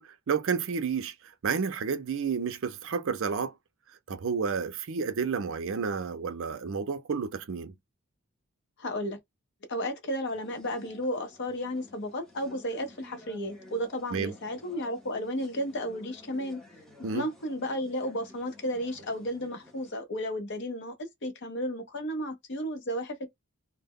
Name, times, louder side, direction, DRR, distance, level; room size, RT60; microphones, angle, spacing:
voice 1, 0.0-3.5 4.1-7.7 14.1-14.3 17.0-17.3, right 5 dB, 65° right, 0.5 m, -31 dB
voice 2, 8.8-9.2 9.7-16.6 17.1-23.3, equal, 55° left, 0.8 m, -33 dB
sound 1, 10.3-19.9, left 2 dB, 5° left, 0.7 m, -53 dB
2.1 x 2.0 x 3.5 m
head